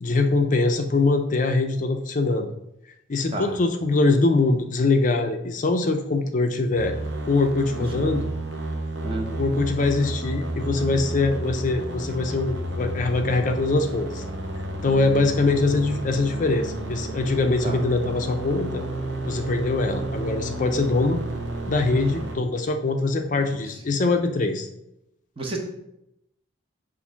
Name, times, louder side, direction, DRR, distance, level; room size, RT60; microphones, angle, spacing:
voice 1, 0.0-2.5 3.1-6.9 7.3-8.3 9.4-14.2 14.8-18.8 19.2-21.2 21.7-24.7, left 3 dB, 40° left, 5 dB, 0.5 m, -23 dB
sound 1, 6.7-22.4, right 1 dB, 60° right, 0.9 m, -31 dB
voice 2, 23.3-23.6 23.9-24.0 25.4-25.6, right 2 dB, 25° right, 1 dB, 0.9 m, -32 dB
6.8 x 2.6 x 5.6 m, 0.84 s
head